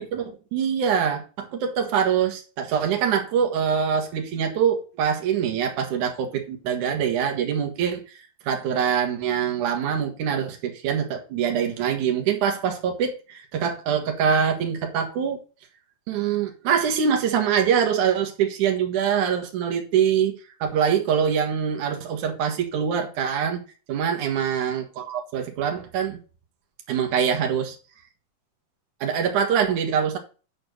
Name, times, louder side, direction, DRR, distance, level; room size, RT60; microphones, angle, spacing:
voice 1, 0.0-15.4 16.1-20.3 20.6-23.6 23.9-26.2 26.9-27.8 29.0-30.2, right 7 dB, 75° right, 3.0 m, -24 dB
9.5 x 4.5 x 6.5 m
omnidirectional pair, 3.6 m